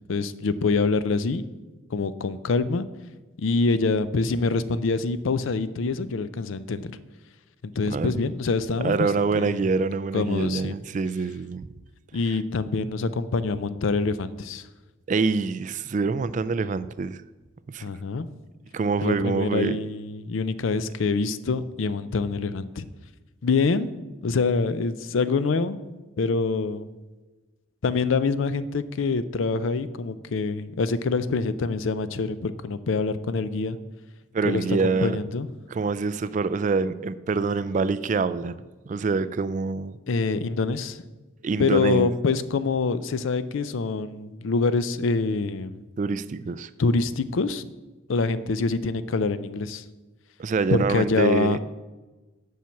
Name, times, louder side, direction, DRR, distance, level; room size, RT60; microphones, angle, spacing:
voice 1, 0.1-1.5 1.9-2.9 3.4-6.9 7.6-9.6 10.1-10.7 12.1-14.6 17.8-18.3 19.0-22.9 23.4-23.9 24.2-25.8 26.2-26.9 27.8-33.8 34.4-35.5 40.1-41.0 41.6-45.8 46.8-47.7 48.1-49.8 50.7-51.6, left 4 dB, 70° left, 14 dB, 0.5 m, -25 dB
voice 2, 7.8-8.2 8.8-11.7 12.3-12.4 15.1-17.2 17.7-17.9 18.7-19.8 34.3-35.2 35.7-40.0 41.4-42.1 46.0-46.7 50.4-51.6, right 4 dB, 35° right, 15 dB, 0.3 m, -25 dB
7.5 x 5.6 x 7.1 m, 1.2 s
head